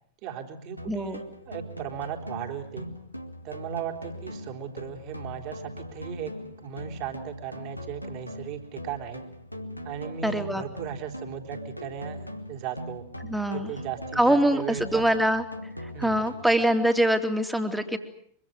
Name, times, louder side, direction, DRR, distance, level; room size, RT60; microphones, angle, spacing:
voice 1, 0.2-2.9 3.4-6.3 6.6-9.2 9.8-13.0 13.5-15.0 15.9-16.2, right 9 dB, 45° right, 4 dB, 3.8 m, -37 dB
sound 1, 0.8-16.8, equal, 90° left, 1.8 m, -41 dB
voice 2, 0.9-1.2 10.2-10.6 13.2-13.7 14.1-15.4 15.8-18.0, right 1 dB, 5° right, 7 dB, 2.7 m, -24 dB
24.5 x 24.0 x 7.9 m, 0.62 s
figure-of-eight pair, 90°, 0 cm